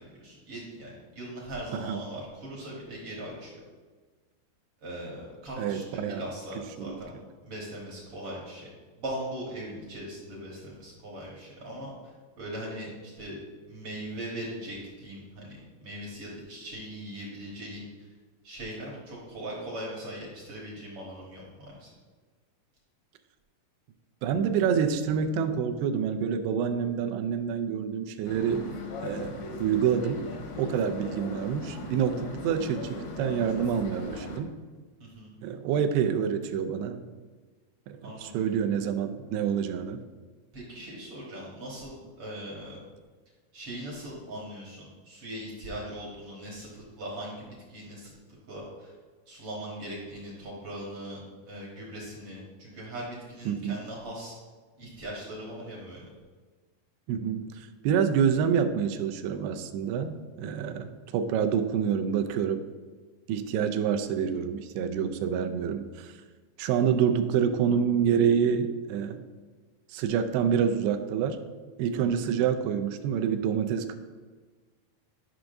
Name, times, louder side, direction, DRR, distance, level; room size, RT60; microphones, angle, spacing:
voice 1, 0.0-3.6 4.8-7.1 7.4-8.7 8.9-13.4 13.7-17.8 18.4-21.9 35.0-35.3 38.0-38.4 40.5-42.8 43.5-48.1 48.5-48.9 49.3-54.3 54.8-56.0 71.9-72.0, right 1 dB, 60° right, -4 dB, 1.4 m, -40 dB
voice 2, 5.6-6.2 6.8-7.0 24.2-28.7 29.0-30.2 30.6-34.5 35.4-37.0 37.9-40.0 53.5-53.8 57.1-62.6 63.3-66.1 66.6-69.2 69.9-71.4 71.8-73.9, right 7 dB, 90° right, 7 dB, 2.7 m, -27 dB
sound 1, 28.3-34.4, left 3 dB, 80° left, 2.9 m, -39 dB
12.0 x 5.8 x 2.6 m, 1.4 s
omnidirectional pair, 4.6 m